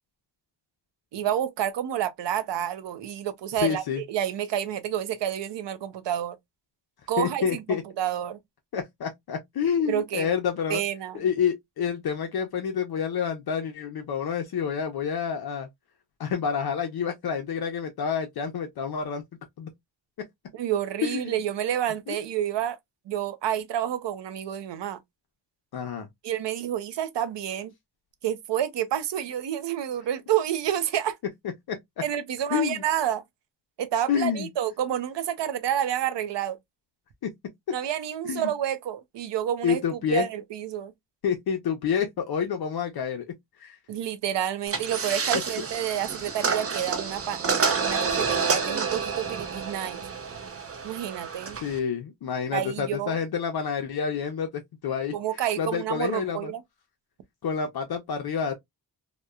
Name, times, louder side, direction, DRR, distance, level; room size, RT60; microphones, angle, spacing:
voice 1, 1.1-6.3 7.1-8.4 9.9-10.3 10.7-11.2 20.5-22.8 23.1-25.0 26.2-27.7 28.2-31.2 32.0-33.2 33.8-36.6 37.7-39.8 40.1-40.9 43.9-50.0 50.8-51.6 52.5-53.2 55.1-56.6, right 10 dB, 75° right, 0.6 m, -29 dB
voice 2, 3.5-4.0 7.2-7.8 8.7-10.8 11.1-15.7 16.2-19.2 19.6-19.7 21.0-21.4 22.1-22.2 25.7-26.1 31.7-31.8 32.5-32.8 34.1-34.5 38.3-38.5 39.6-40.3 41.2-43.2 43.6-43.8 51.6-54.5 54.8-56.5 57.4-58.5, left 7 dB, 60° left, 0.6 m, -28 dB
sound 1, 44.7-51.8, right 5 dB, 35° right, 0.5 m, -29 dB
2.9 x 2.1 x 2.3 m
wide cardioid pair, 140°, 43 cm